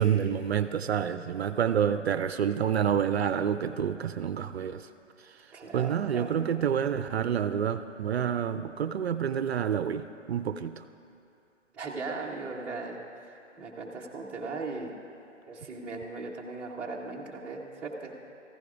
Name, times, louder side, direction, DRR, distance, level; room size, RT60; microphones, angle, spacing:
voice 1, 0.0-4.9 5.2-10.8, right 8 dB, 60° right, 12 dB, 0.5 m, -28 dB
voice 2, 5.5-6.3 11.7-14.9 15.5-18.1, right 3 dB, 5° right, -6 dB, 0.6 m, -38 dB
18.0 x 14.5 x 2.4 m, 2.8 s
figure-of-eight pair, 135°, 37 cm